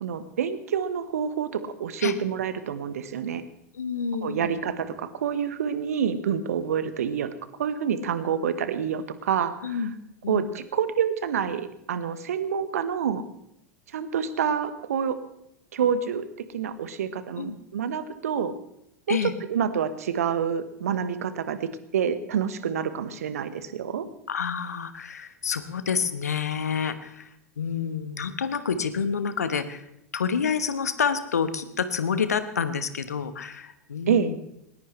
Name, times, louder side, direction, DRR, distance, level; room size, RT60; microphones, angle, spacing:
voice 1, 0.0-3.4 4.2-7.3 7.6-9.8 10.3-13.2 13.9-15.2 15.7-18.5 19.1-24.1 34.1-34.3, right 7 dB, 65° right, 12 dB, 1.3 m, -27 dB
voice 2, 3.7-4.6 9.6-9.9 10.2-10.4 17.4-17.6 19.1-19.3 24.3-29.9 30.1-34.4, left 6 dB, 70° left, 12 dB, 1.2 m, -28 dB
20.0 x 19.0 x 3.3 m, 0.79 s
figure-of-eight pair, 85°, 9 cm